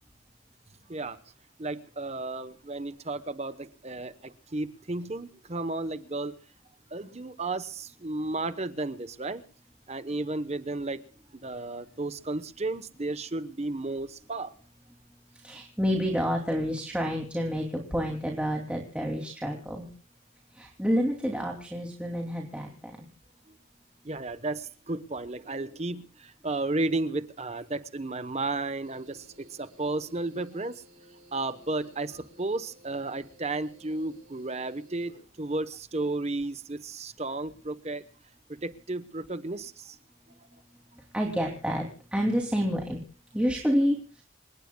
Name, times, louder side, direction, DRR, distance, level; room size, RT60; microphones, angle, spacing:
voice 1, 1.6-6.3 6.9-9.4 9.9-11.0 11.3-14.5 24.0-30.8 31.3-38.1 38.6-40.0, right 2 dB, 30° right, 12 dB, 1.0 m, -33 dB
voice 2, 15.3-19.9 20.5-23.1 41.0-43.0 43.3-44.2, equal, 5° right, 0 dB, 2.7 m, -29 dB
sound 1, 28.8-35.3, right 1 dB, 65° right, 7.0 m, -57 dB
27.5 x 19.0 x 2.3 m, 0.43 s
head